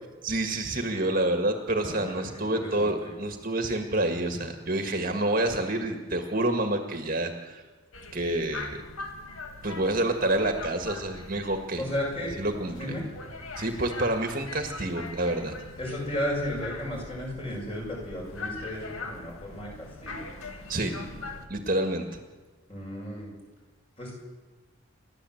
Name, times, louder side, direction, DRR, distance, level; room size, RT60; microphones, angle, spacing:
voice 1, 0.2-7.6 8.1-8.8 9.6-11.8 12.4-12.9 13.6-15.6 20.7-20.9 21.5-22.1, right 1 dB, 40° right, 5 dB, 1.8 m, -28 dB
voice 2, 1.9-3.1 11.8-12.4 12.7-13.0 15.8-20.2 22.7-23.3 24.0-24.1, left 1 dB, 25° left, -2 dB, 7.2 m, -34 dB
sound 1, 7.9-21.5, left 3 dB, 80° left, 2.2 m, -42 dB
29.0 x 12.0 x 8.0 m, 1.3 s
head